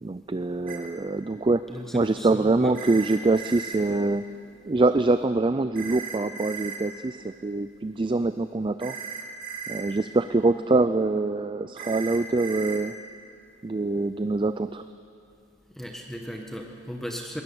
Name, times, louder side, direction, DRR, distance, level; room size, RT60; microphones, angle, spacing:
voice 1, 0.0-1.6 1.9-4.2 4.7-9.0 9.7-13.0 13.6-14.8, right 2 dB, 25° right, 11 dB, 0.4 m, -24 dB
sound 1, 0.7-0.8 2.7-3.8 5.8-6.8 8.8-9.8 11.8-12.8, right 7 dB, 45° right, 2.3 m, -36 dB
voice 2, 1.7-2.7 15.7-17.4, equal, ahead, 2 dB, 1.3 m, -36 dB
20.5 x 19.0 x 7.1 m, 2.5 s
head